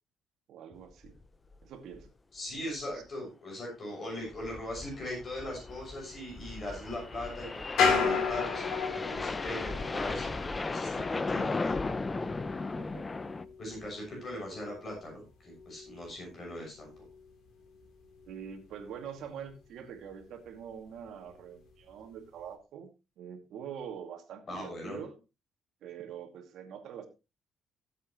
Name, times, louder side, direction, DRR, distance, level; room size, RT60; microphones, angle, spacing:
voice 1, 0.5-1.1 1.6-2.1 12.8-13.1 14.1-14.5 18.3-22.9 23.2-25.1 25.8-27.1, right 8 dB, 70° right, 5 dB, 2.4 m, -44 dB
sound 1, 1.0-1.2 1.5-1.6 1.9-2.0 2.5-2.8 4.1-13.4, left 3 dB, 20° left, 0.7 m, -36 dB
voice 2, 2.3-11.8 13.6-16.9 24.5-25.0, left 1 dB, 35° left, 0 dB, 6.5 m, -40 dB
sound 2, 5.7-17.3 17.6-19.2 19.4-19.5 19.9-20.4 20.7-21.9 22.4-22.5, left 5 dB, 75° left, 3.5 m, -36 dB
16.5 x 8.1 x 3.1 m, 0.27 s
cardioid pair, 135°, 0 cm